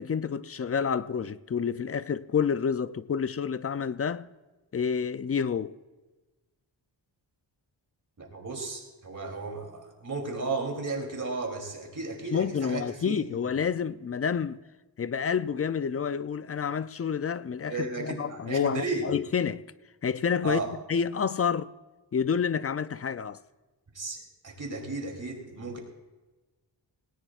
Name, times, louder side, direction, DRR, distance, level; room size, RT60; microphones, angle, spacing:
voice 1, 0.0-4.3 4.7-5.7 12.3-14.6 15.0-19.6 20.0-20.6 20.9-21.7 22.1-23.4, left 6 dB, 35° left, 0.4 m, -29 dB
voice 2, 8.2-13.2 17.7-19.1 20.4-20.7 23.9-25.8, right 3 dB, 40° right, 3.1 m, -34 dB
19.0 x 18.5 x 2.4 m
wide cardioid pair, 115°, 45 cm